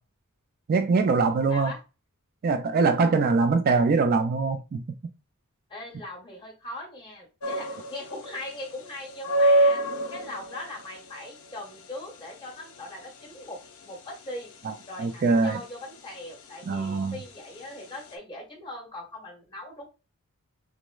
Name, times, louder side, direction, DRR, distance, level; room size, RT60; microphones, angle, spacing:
voice 1, 0.7-1.7 2.4-4.8 14.7-14.8 15.0-15.6 16.7-17.1, right 4 dB, 40° right, 0.3 m, -23 dB
voice 2, 1.5-1.8 5.7-14.5 14.9-19.9, left 1 dB, 20° left, 1.3 m, -40 dB
sound 1, 7.4-18.1, right 1 dB, 75° left, 0.7 m, -29 dB
6.0 x 2.1 x 2.3 m
head